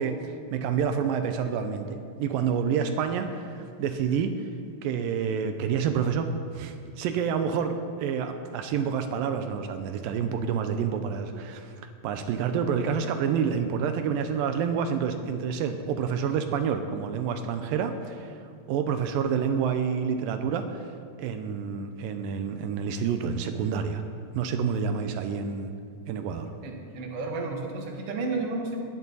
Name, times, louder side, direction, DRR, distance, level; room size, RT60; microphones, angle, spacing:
voice 1, 0.0-4.5 4.8-18.4 18.7-20.9 21.2-24.0 24.3-25.7 26.1-26.5, right 7 dB, 85° right, 7 dB, 2.0 m, -28 dB
voice 2, 26.6-28.8, right 3 dB, 55° right, 1 dB, 1.7 m, -32 dB
18.0 x 11.0 x 4.0 m, 2.3 s
omnidirectional pair, 4.8 m